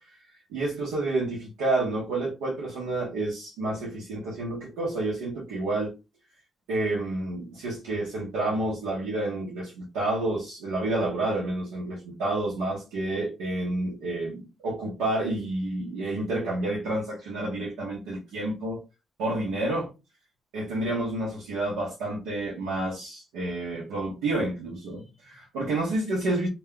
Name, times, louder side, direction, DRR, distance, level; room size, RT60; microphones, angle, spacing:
voice 1, 0.5-5.9 6.7-18.8 19.2-19.9 20.5-26.5, right 2 dB, 90° right, 0.8 m, -29 dB
2.2 x 2.1 x 3.6 m
supercardioid pair, 55°, 0 cm